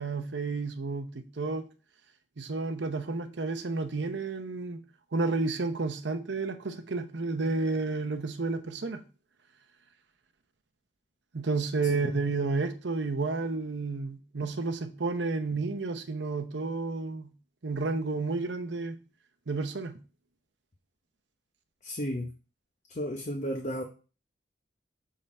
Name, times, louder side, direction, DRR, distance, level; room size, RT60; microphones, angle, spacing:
voice 1, 0.0-1.7 2.4-4.8 5.1-9.0 11.3-17.3 17.6-19.0 19.5-20.0, right 3 dB, 80° right, 8 dB, 0.8 m, -31 dB
voice 2, 21.8-22.3 23.0-23.8, equal, 40° left, 1 dB, 0.8 m, -33 dB
6.7 x 3.8 x 4.2 m, 0.35 s
head